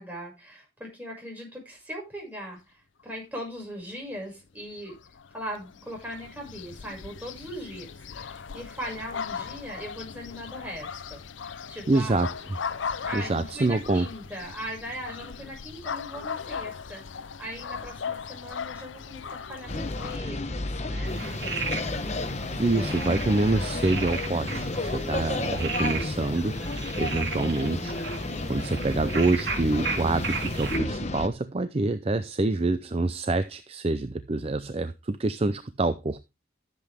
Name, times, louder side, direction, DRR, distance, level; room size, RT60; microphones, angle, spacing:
voice 1, 0.0-5.0 5.3-7.9 8.1-12.3 13.0-17.0 17.4-21.1 22.5-23.4, equal, 10° right, -1 dB, 6.2 m, -39 dB
sound 1, 4.8-20.2, left 6 dB, 90° left, 0.6 m, -38 dB
voice 2, 11.9-12.3 13.1-14.1 22.6-27.9 28.5-36.2, right 2 dB, 30° right, 12 dB, 0.5 m, -26 dB
sound 2, 19.7-31.3, left 2 dB, 35° left, 1.0 m, -32 dB
sound 3, 21.0-30.8, right 4 dB, 70° right, 3.4 m, -36 dB
13.5 x 7.8 x 3.5 m, 0.25 s
head